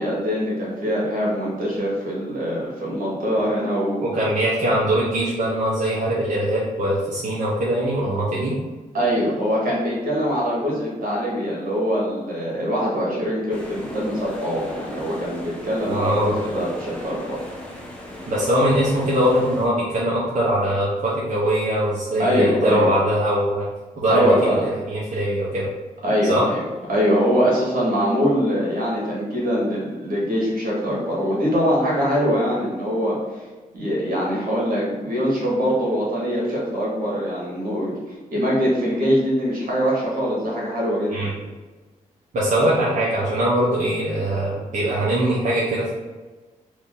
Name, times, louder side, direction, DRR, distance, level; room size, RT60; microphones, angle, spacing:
voice 1, 0.0-4.0 8.9-17.5 22.2-22.9 24.1-24.6 26.0-26.6 26.9-33.4 33.7-41.3 42.6-42.7, equal, 75° right, -5 dB, 1.5 m, -23 dB
voice 2, 4.0-8.5 15.9-16.3 18.3-23.7 24.0-24.3 24.6-25.7 26.3-26.4 41.1-41.3 42.3-45.9, right 1 dB, 60° right, -8 dB, 0.9 m, -21 dB
sound 1, 13.5-19.7, left 1 dB, 5° left, 0.7 m, -37 dB
2.9 x 2.7 x 3.8 m, 1.3 s
cardioid pair, 105°, 15 cm